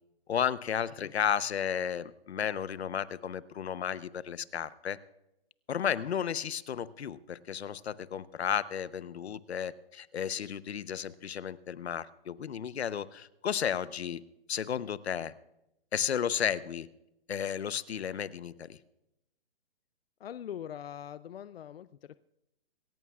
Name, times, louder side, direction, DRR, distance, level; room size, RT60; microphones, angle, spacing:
voice 1, 0.3-5.0 5.7-14.2 14.5-15.3 15.9-16.9 17.3-18.8, left 8 dB, 85° left, 16 dB, 0.9 m, -33 dB
voice 2, 20.2-22.1, left 10 dB, 70° left, 15 dB, 0.5 m, -42 dB
27.0 x 14.5 x 2.4 m, 0.89 s
hypercardioid pair, 170°, 31 cm